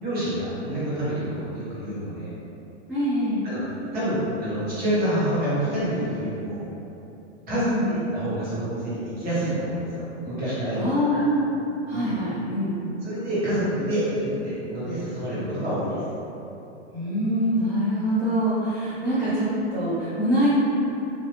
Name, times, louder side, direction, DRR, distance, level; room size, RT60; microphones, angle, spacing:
voice 1, 0.0-2.3 3.4-3.6 3.9-6.6 7.5-10.8 11.1-11.2 11.9-12.1 13.0-16.0, right 1 dB, 25° right, -11 dB, 1.3 m, -27 dB
voice 2, 2.9-3.5 7.6-8.0 10.8-11.5 11.9-12.8 16.9-20.5, equal, 5° right, -17 dB, 0.3 m, -24 dB
2.9 x 2.8 x 3.1 m, 2.9 s
hypercardioid pair, 140°, 36 cm